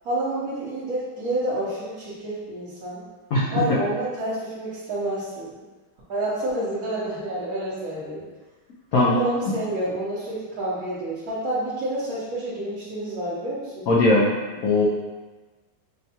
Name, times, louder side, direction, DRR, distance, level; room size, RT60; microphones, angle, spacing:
voice 1, 0.0-3.0 3.5-5.6 6.1-8.2 9.0-13.9, right 1 dB, 60° right, -10 dB, 1.1 m, -29 dB
voice 2, 13.9-14.3 14.6-14.8, left 2 dB, 65° left, -6 dB, 0.9 m, -18 dB
6.2 x 2.3 x 2.8 m, 1.3 s
omnidirectional pair, 2.2 m